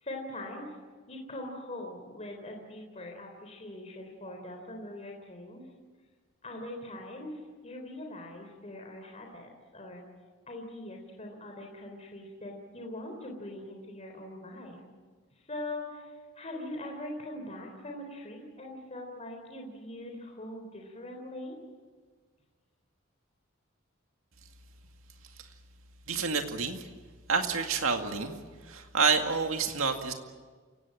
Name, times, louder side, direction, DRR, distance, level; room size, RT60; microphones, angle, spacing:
voice 1, 0.0-0.7 1.1-5.6 6.4-10.0 10.5-14.8 15.5-21.6, left 1 dB, 30° left, 2 dB, 3.7 m, -42 dB
voice 2, 26.1-26.9 27.3-28.4 28.6-30.1, right 5 dB, 80° right, 4 dB, 2.2 m, -28 dB
29.0 x 17.5 x 8.6 m, 1.4 s
head